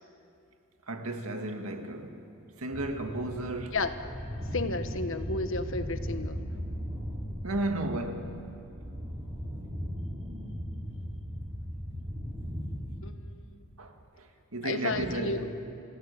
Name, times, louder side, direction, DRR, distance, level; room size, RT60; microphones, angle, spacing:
voice 1, 0.9-2.2 2.5-3.8 7.4-8.4 13.8-15.5, right 1 dB, 80° right, 2.0 m, -34 dB
sound 1, 2.7-13.1, equal, 30° right, 5.4 m, -37 dB
voice 2, 4.5-6.4 13.0-13.6 14.6-15.5, left 3 dB, 60° left, 1.4 m, -32 dB
29.5 x 16.0 x 8.6 m
head